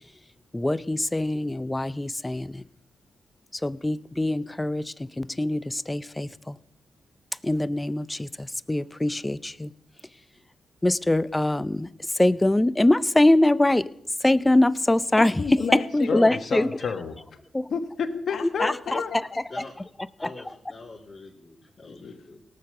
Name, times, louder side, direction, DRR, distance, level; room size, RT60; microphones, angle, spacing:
voice 1, 0.5-2.6 3.5-6.6 7.4-9.7 10.8-11.9 12.1-13.9 14.2-15.3 15.7-16.7 17.5-17.7 18.4-19.0 20.2-20.3, left 1 dB, 15° left, 16 dB, 0.5 m, -23 dB
voice 2, 15.4-17.2 17.7-19.2 21.9-22.4, left 5 dB, 65° left, 5 dB, 1.4 m, -30 dB
voice 3, 20.2-22.4, left 3 dB, 30° left, -5 dB, 3.0 m, -44 dB
18.0 x 6.9 x 6.7 m, 0.76 s
cardioid pair, 70°, 0 cm